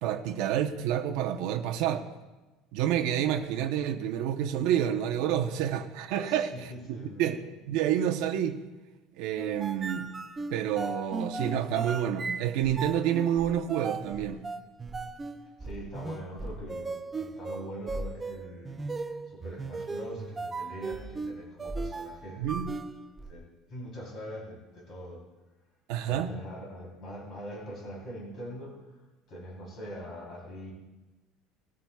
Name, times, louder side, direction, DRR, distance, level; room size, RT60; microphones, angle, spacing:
voice 1, 0.0-2.1 2.7-7.4 7.7-8.6 9.2-10.1 10.5-14.4 22.4-22.7 25.9-26.3, right 10 dB, 60° right, 4 dB, 0.8 m, -29 dB
voice 2, 6.2-7.2 15.6-18.8 19.3-22.6 23.3-23.4 23.7-25.2 26.1-28.7 29.3-30.7, equal, 30° left, -4 dB, 3.5 m, -42 dB
sound 1, 9.4-23.3, right 3 dB, 15° right, 0.4 m, -37 dB
19.5 x 13.5 x 2.4 m, 1.1 s
cardioid pair, 170°, 0 cm